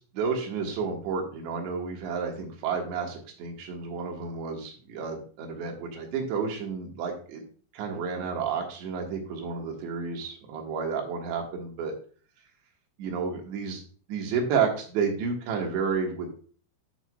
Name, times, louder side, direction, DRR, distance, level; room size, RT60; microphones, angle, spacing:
voice 1, 0.0-7.4 7.7-11.9 13.0-13.8 14.1-16.3, right 5 dB, 75° right, 1 dB, 3.6 m, -31 dB
10.5 x 6.1 x 2.3 m, 0.42 s
omnidirectional pair, 5.2 m